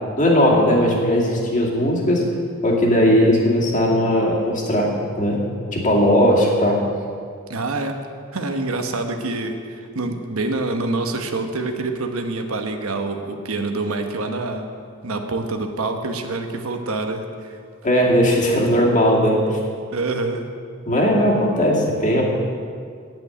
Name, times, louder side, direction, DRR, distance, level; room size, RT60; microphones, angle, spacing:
voice 1, 0.2-2.2 2.6-4.9 5.2-5.4 5.7-6.8 17.8-19.6 20.9-22.2, equal, 40° left, -2 dB, 2.3 m, -18 dB
voice 2, 7.5-8.0 8.3-14.7 15.0-17.6 19.9-20.5, right 2 dB, 80° right, 5 dB, 1.1 m, -26 dB
8.9 x 8.5 x 9.0 m, 2.2 s
head